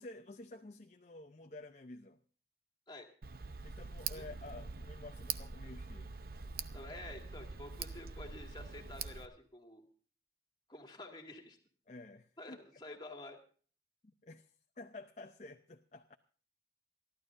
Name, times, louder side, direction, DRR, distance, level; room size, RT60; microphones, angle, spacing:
voice 1, 0.0-2.2 3.6-6.1 11.9-12.6 14.0-14.5 14.8-16.1, left 2 dB, 40° left, 0.7 m, -51 dB
Tick, 3.2-9.3, right 6 dB, 55° right, 0.8 m, -44 dB
voice 2, 6.7-9.8 10.7-11.6 12.4-13.4, left 2 dB, 25° left, 2.2 m, -50 dB
28.5 x 12.0 x 2.6 m
head